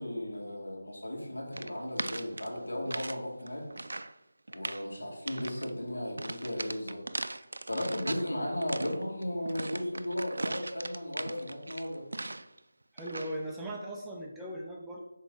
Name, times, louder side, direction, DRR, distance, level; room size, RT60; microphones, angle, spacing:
voice 1, 0.0-3.7 4.5-7.0 7.7-12.0, left 1 dB, 90° left, -1 dB, 1.9 m, -35 dB
sound 1, 1.5-3.2 3.5-4.1 4.5-4.9 5.3-5.7 6.2-8.3 8.6-12.6 13.0-13.4, right 2 dB, 80° right, 0.3 m, -39 dB
voice 2, 12.9-15.0, right 1 dB, 5° right, -3 dB, 0.6 m, -39 dB
5.9 x 4.2 x 3.9 m, 0.90 s
figure-of-eight pair, 165°, 0 cm